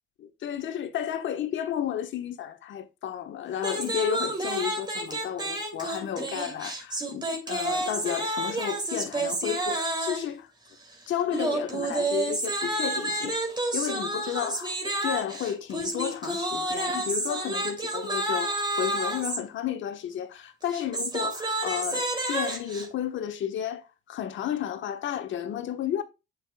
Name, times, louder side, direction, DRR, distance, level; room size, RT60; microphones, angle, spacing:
voice 1, 0.2-10.5 11.1-13.4 13.7-26.0, left 9 dB, 75° left, 1.3 m, -32 dB
sound 1, 3.6-10.3 11.3-19.4 20.6-22.9, right 2 dB, 20° right, 2.9 m, -30 dB
7.9 x 6.7 x 2.3 m
cardioid pair, 90°, 20 cm